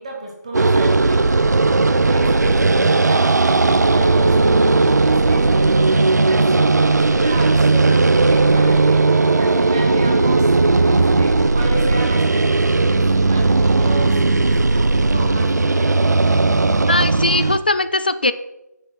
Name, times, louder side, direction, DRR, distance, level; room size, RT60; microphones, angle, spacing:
voice 1, 0.0-1.4 2.0-4.5 4.8-10.5 10.8-14.2 14.5-15.9, right 2 dB, 20° right, 0 dB, 1.3 m, -32 dB
sound 1, 0.5-17.6, right 3 dB, 70° right, 0.6 m, -16 dB
voice 2, 16.9-18.3, left 2 dB, 30° left, 14 dB, 0.3 m, -19 dB
8.1 x 6.2 x 4.3 m, 0.90 s
figure-of-eight pair, 170°, 10 cm